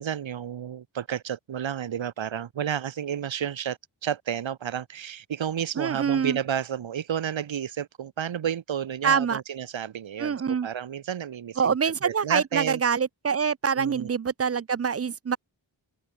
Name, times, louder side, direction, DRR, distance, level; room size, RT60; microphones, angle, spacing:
voice 1, 0.0-11.7 12.0-12.8 13.7-14.1, right 9 dB, 75° right, 0.9 m, -31 dB
voice 2, 5.8-6.4 9.0-9.4 10.2-10.7 11.6-15.4, right 6 dB, 35° right, 0.4 m, -25 dB
open air
wide cardioid pair, 70°, 47 cm